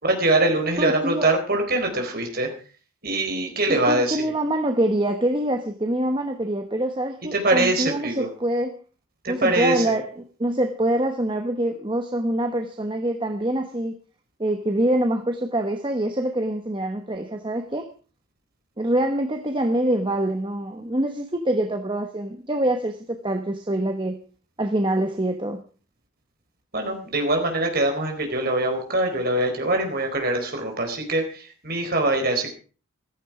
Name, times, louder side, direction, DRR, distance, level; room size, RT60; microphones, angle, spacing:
voice 1, 0.0-2.5 3.0-4.2 7.3-8.3 9.2-9.9 26.7-32.5, right 2 dB, 45° right, 3 dB, 4.2 m, -23 dB
voice 2, 0.8-1.3 3.7-8.7 9.3-14.0 14.4-17.9 18.8-24.2 24.6-25.6, right 1 dB, 20° right, 5 dB, 1.0 m, -25 dB
15.0 x 13.5 x 4.8 m, 0.39 s
head